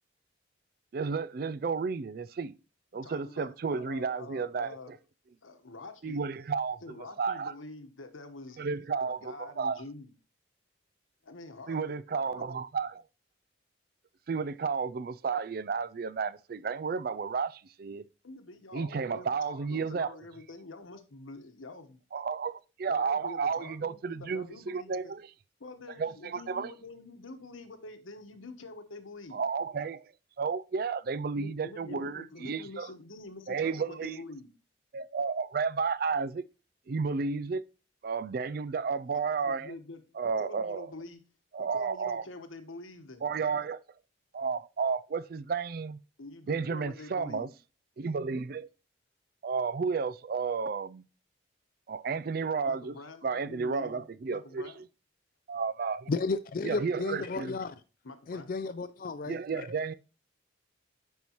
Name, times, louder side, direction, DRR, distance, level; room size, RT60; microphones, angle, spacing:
voice 1, 0.9-2.5 2.9-5.0 6.0-6.8 7.2-7.5 8.6-9.8 11.7-13.0 14.3-18.0 18.7-20.2 22.1-25.2 26.0-26.7 29.3-30.1 30.4-32.9 33.5-34.2 34.9-36.4 36.9-37.7 38.0-39.7 40.2-40.9 41.5-42.3 43.2-43.8 44.3-46.0 46.5-47.5 48.0-48.7 49.4-51.0 51.9-52.9 53.2-54.8 55.5-56.1 56.6-57.6 59.3-59.9, right 5 dB, 50° right, 0.3 m, -32 dB
voice 2, 2.9-5.0 5.4-6.2 6.8-8.6 9.2-10.1 11.2-12.0 12.2-12.6 18.2-22.0 22.9-25.1 25.6-29.4 31.3-34.5 39.3-41.2 41.6-43.3 46.2-47.5 52.7-54.8 58.0-58.5, left 2 dB, 90° left, 1.2 m, -46 dB
voice 3, 56.1-57.7 58.3-59.7, left 3 dB, 45° left, 0.4 m, -33 dB
9.4 x 5.5 x 3.0 m
head